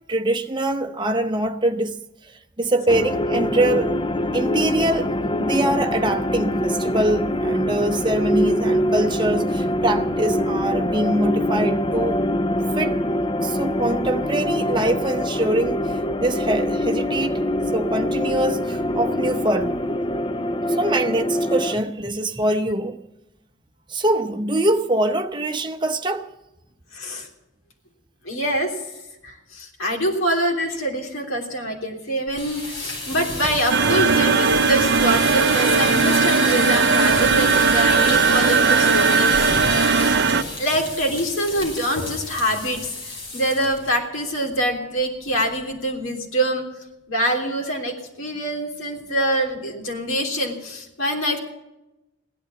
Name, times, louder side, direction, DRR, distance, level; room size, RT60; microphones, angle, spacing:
voice 1, 0.1-2.0 2.2-3.9 4.3-12.2 12.8-13.0 13.4-17.4 17.7-19.8 20.7-23.0 23.9-26.3, right 1 dB, 25° right, 0.9 m, -23 dB
sound 1, 2.9-21.8, left 1 dB, 25° left, 0.5 m, -24 dB
voice 2, 26.9-27.3 28.2-28.8 29.2-39.7 40.6-46.7 47.1-51.4, right 1 dB, 85° left, 3.3 m, -25 dB
sound 2, 32.3-43.9 44.2-44.5 44.8-44.9 45.3-45.7, left 2 dB, 65° left, 5.9 m, -30 dB
sound 3, 33.7-40.4, right 5 dB, 55° right, 0.6 m, -18 dB
16.5 x 11.5 x 7.1 m
head